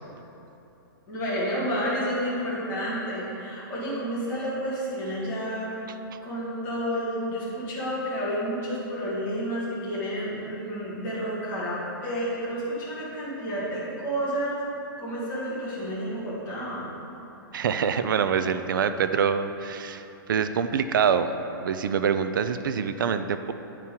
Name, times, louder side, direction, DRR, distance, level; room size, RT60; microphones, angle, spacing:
voice 1, 1.1-5.7 6.2-14.6 15.0-17.0, equal, 15° left, -10 dB, 1.6 m, -30 dB
voice 2, 17.5-23.5, right 7 dB, 60° right, 10 dB, 0.4 m, -25 dB
9.6 x 4.4 x 3.6 m, 2.9 s
hypercardioid pair, 180°, 12 cm